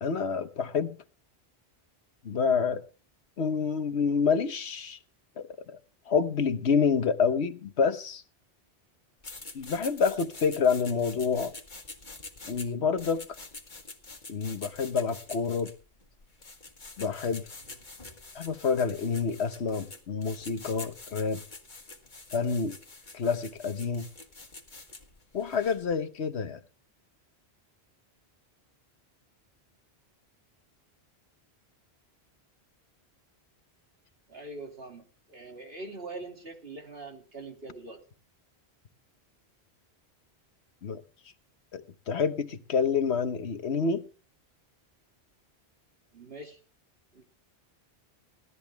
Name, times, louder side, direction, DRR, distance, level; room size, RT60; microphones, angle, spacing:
voice 1, 0.0-1.0 2.2-2.8 3.4-5.0 5.4-5.5 6.1-8.2 9.5-11.5 12.5-13.3 14.3-15.7 17.0-17.4 18.3-21.4 22.3-22.8 23.1-24.1 25.3-26.6 40.8-41.0 41.7-44.1, left 5 dB, 80° left, 1.3 m, -28 dB
sound 1, 9.2-25.9, left 3 dB, 45° left, 1.9 m, -46 dB
voice 2, 34.3-38.0 46.1-46.6 47.1-47.2, right 2 dB, 65° right, 2.9 m, -43 dB
18.0 x 12.5 x 3.4 m
omnidirectional pair, 1.1 m